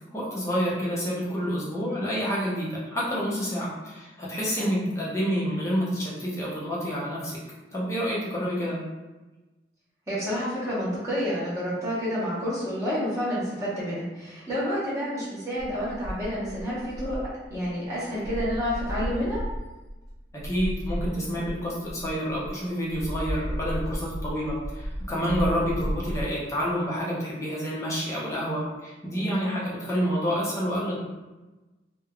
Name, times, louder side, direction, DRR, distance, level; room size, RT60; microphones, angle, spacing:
voice 1, 0.1-7.4 7.7-8.8 20.4-31.0, equal, 15° left, -6 dB, 0.6 m, -28 dB
voice 2, 10.1-17.2 17.5-19.4 29.1-29.4, equal, 15° right, -10 dB, 0.9 m, -29 dB
sound 1, 15.6-17.9 18.2-22.5 22.9-26.3, equal, 65° right, 0.9 m, -34 dB
3.2 x 2.1 x 2.3 m, 1.1 s
head